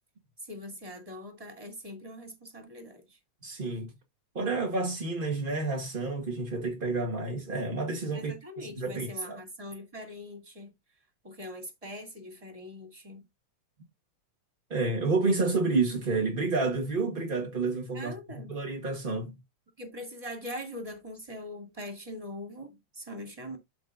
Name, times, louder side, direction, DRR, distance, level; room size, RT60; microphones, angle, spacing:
voice 1, 0.4-3.2 8.1-10.7 11.2-13.3 17.9-18.6 19.8-23.6, left 1 dB, 10° right, 2.1 m, -42 dB
voice 2, 3.4-3.9 4.3-9.4 14.7-19.4, right 3 dB, 55° right, 0.5 m, -30 dB
12.5 x 5.0 x 2.6 m
omnidirectional pair, 3.5 m